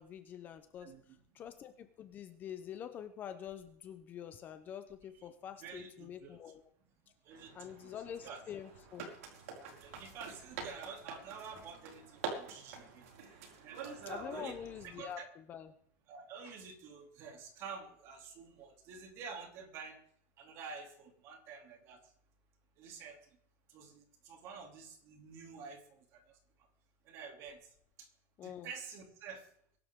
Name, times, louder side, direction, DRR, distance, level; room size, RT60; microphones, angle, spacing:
voice 1, 0.0-0.9 1.3-6.6 7.5-9.1 14.1-15.7 28.4-28.7, left 9 dB, 25° left, 9 dB, 0.8 m, -46 dB
voice 2, 0.8-1.2 5.1-5.2 5.6-6.5 7.2-8.0 8.2-8.4 9.6-13.1 13.6-14.0 14.3-14.6 14.8-15.3 16.1-20.0 20.4-22.0 22.8-23.2 23.7-26.4 27.0-27.7 28.0-28.1 28.4-29.5, right 5 dB, 35° right, 4 dB, 3.0 m, -49 dB
sound 1, 7.3-15.1, right 5 dB, 90° right, 5.5 m, -47 dB
23.0 x 12.0 x 3.7 m, 0.67 s
supercardioid pair, 180°, 8 cm